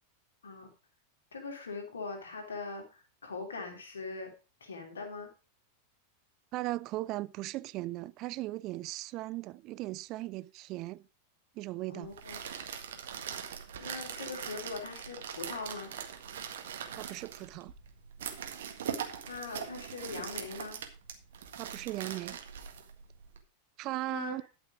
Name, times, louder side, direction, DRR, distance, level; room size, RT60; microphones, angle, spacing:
voice 1, 1.3-4.3 4.6-5.3 11.9-12.4 13.8-15.9 19.0-20.8 24.1-24.4, left 4 dB, 70° left, 3.1 m, -41 dB
voice 2, 6.5-11.0 11.6-12.1 16.9-17.7 21.6-22.4 23.8-24.4, right 18 dB, 40° right, 0.4 m, -37 dB
sound 1, 12.0-23.4, right 8 dB, 60° right, 1.7 m, -41 dB
12.0 x 6.1 x 4.9 m
figure-of-eight pair, 90°, 0 cm